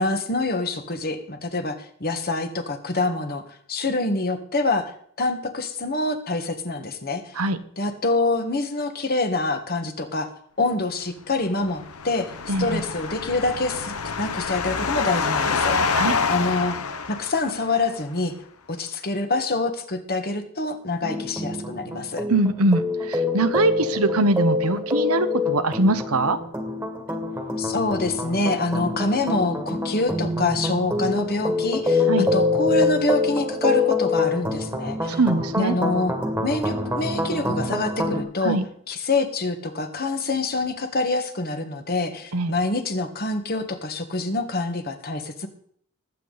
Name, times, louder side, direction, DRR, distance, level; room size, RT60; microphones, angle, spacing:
voice 1, 0.0-3.4 3.7-7.3 7.8-10.3 10.6-15.8 16.3-16.8 17.1-18.3 18.7-22.2 27.6-35.2 35.6-36.1 36.4-38.6 38.9-45.5, left 2 dB, 45° left, 7 dB, 1.6 m, -26 dB
sound 1, 11.5-17.8, left 5 dB, 80° left, 1.1 m, -27 dB
voice 2, 12.5-12.8 15.9-16.2 22.3-26.4 32.1-32.3 35.2-35.7 38.4-38.6 42.3-42.5, right 2 dB, 85° right, 11 dB, 1.0 m, -22 dB
sound 2, 21.0-38.2, left 3 dB, 10° right, 1.8 m, -26 dB
20.0 x 8.5 x 4.1 m, 0.62 s
head